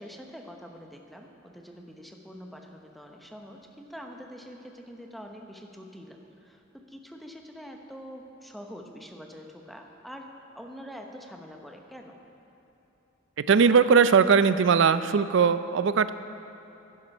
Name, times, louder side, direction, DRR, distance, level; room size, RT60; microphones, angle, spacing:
voice 1, 0.0-12.2, equal, ahead, 2 dB, 0.8 m, -45 dB
voice 2, 13.4-16.1, right 6 dB, 65° right, 13 dB, 0.4 m, -20 dB
11.0 x 10.5 x 5.4 m, 3.0 s
head